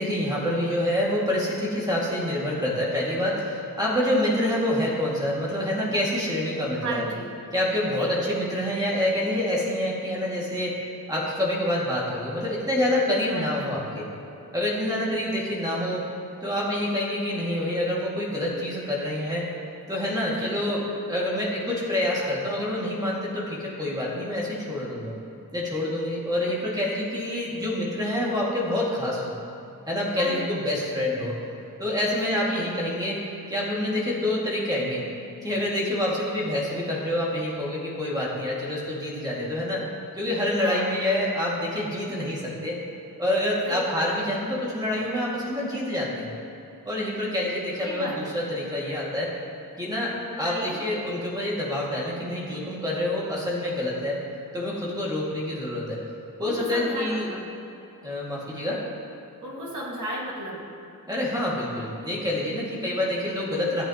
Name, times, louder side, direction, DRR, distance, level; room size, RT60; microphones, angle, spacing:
voice 1, 0.0-7.0 7.5-10.8 11.1-14.1 14.5-16.0 16.4-19.5 19.9-20.8 21.1-25.1 25.5-29.3 29.9-31.3 31.8-33.2 33.5-35.0 35.4-39.8 40.1-42.8 43.2-46.3 46.9-49.3 49.8-54.2 54.5-56.0 56.4-57.3 58.0-58.8 61.1-63.8, left 1 dB, 10° right, -6 dB, 2.1 m, -27 dB
voice 2, 6.8-7.3 7.9-8.1 13.3-13.8 20.2-20.6 30.2-30.5 32.4-32.7 40.6-40.9 43.6-44.0 47.8-48.3 50.3-50.8 56.4-57.5 59.4-60.6, right 1 dB, 55° right, -4 dB, 2.0 m, -34 dB
15.0 x 8.4 x 3.0 m, 2.8 s
wide cardioid pair, 160°, 36 cm